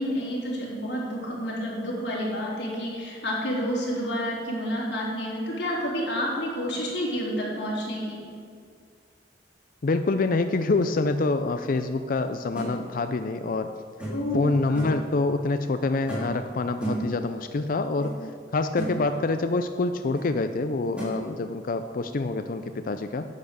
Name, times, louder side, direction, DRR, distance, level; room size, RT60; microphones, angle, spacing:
voice 1, 0.0-8.2 14.1-14.5, equal, 75° left, -5 dB, 3.7 m, -29 dB
voice 2, 9.8-13.7 14.0-23.3, left 3 dB, 50° left, 8 dB, 0.5 m, -26 dB
sound 1, 12.6-12.7 14.0-14.3 14.7-15.0 16.1-16.4 16.8-17.1 18.0-18.1 18.5-19.0 20.2-20.3 21.0-21.1, right 1 dB, 5° right, 3.4 m, -33 dB
10.5 x 8.7 x 6.6 m, 2.1 s
head